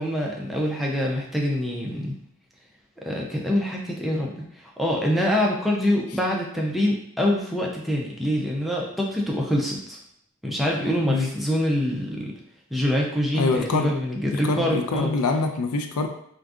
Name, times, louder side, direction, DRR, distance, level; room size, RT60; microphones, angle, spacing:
voice 1, 0.0-2.2 3.0-10.0 10.4-12.3 12.7-15.1, left 1 dB, ahead, -2 dB, 0.4 m, -25 dB
voice 2, 13.3-13.9 14.4-16.1, left 3 dB, 80° left, 5 dB, 0.4 m, -24 dB
3.7 x 2.5 x 2.3 m, 0.71 s
head